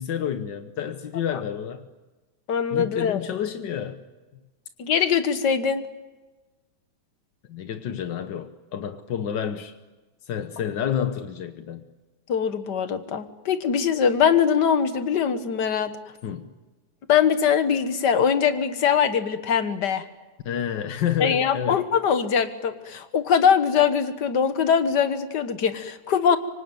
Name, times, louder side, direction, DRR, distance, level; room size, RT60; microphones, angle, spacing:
voice 1, 0.0-1.9 2.7-4.0 7.5-9.7 10.3-11.9 16.2-16.5 20.4-21.8, left 9 dB, 70° left, 9 dB, 1.0 m, -29 dB
voice 2, 2.5-3.2 4.8-5.8 12.3-15.9 17.1-20.0 21.2-26.4, left 7 dB, 45° left, 10 dB, 1.4 m, -22 dB
25.0 x 25.0 x 9.2 m, 1.2 s
omnidirectional pair, 3.5 m